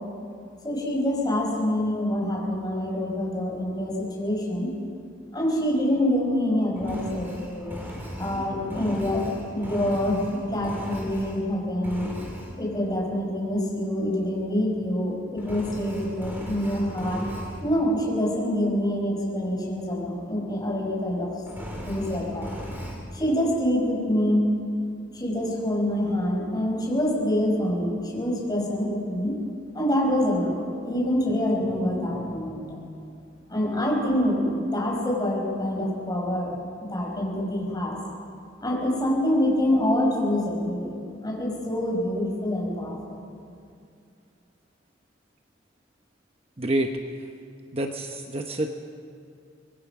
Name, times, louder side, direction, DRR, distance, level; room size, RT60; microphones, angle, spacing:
voice 1, 0.6-4.7 5.3-7.7 8.1-9.2 9.5-12.1 12.6-17.2 17.6-21.3 21.9-22.5 23.1-24.5 25.1-29.4 29.7-32.7 33.5-36.6 36.9-38.0 38.6-40.9 41.2-43.2, left 1 dB, 20° left, -2 dB, 5.6 m, -26 dB
Engine, 6.8-11.5 11.8-12.5 15.4-17.6 21.4-23.0, equal, 10° right, 4.2 m, -38 dB
voice 2, 46.6-47.3 47.7-48.7, right 1 dB, 30° right, 4 dB, 1.0 m, -28 dB
24.5 x 20.5 x 6.0 m, 2.4 s
head